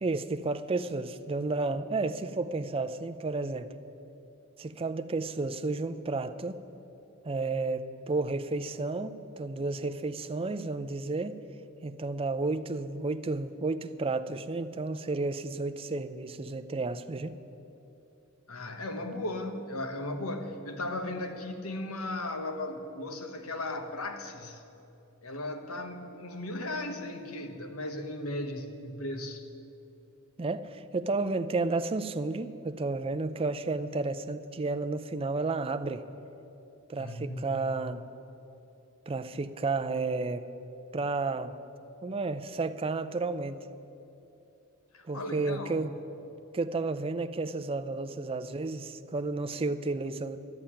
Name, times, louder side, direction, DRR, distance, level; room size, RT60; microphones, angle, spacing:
voice 1, 0.0-3.7 4.6-6.6 7.2-11.4 11.8-17.4 30.4-36.0 36.9-38.0 39.1-40.5 40.9-41.5 42.0-43.6 45.1-46.0 46.5-50.4, right 3 dB, 25° right, 10 dB, 0.5 m, -32 dB
voice 2, 18.5-24.6 25.2-29.4 37.0-37.6 44.9-45.8, left 1 dB, 85° left, 6 dB, 1.2 m, -36 dB
12.0 x 7.6 x 9.9 m, 2.8 s
head